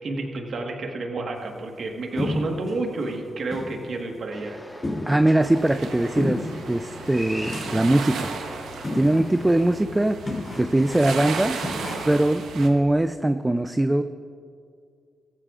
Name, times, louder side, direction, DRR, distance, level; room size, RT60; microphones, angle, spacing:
voice 1, 0.0-4.6, right 2 dB, 65° right, 3 dB, 1.5 m, -30 dB
sound 1, 2.2-2.7 3.1-3.2 3.5-3.8 4.1-4.2 4.8-5.4 6.2-6.6 7.4-8.0 8.8-9.3 9.6-9.7 10.2-11.2 11.6-12.3, left 2 dB, 35° left, 3.2 m, -31 dB
sound 2, 4.3-9.6, left 1 dB, 10° left, 1.6 m, -40 dB
voice 2, 5.1-8.3 8.9-10.2 10.5-11.6 12.0-14.0, right 1 dB, 15° right, 9 dB, 0.4 m, -21 dB
sound 3, 5.4-12.7, right 5 dB, 90° right, 1.0 m, -35 dB
15.5 x 14.5 x 2.5 m, 2.3 s
cardioid pair, 60°, 0 cm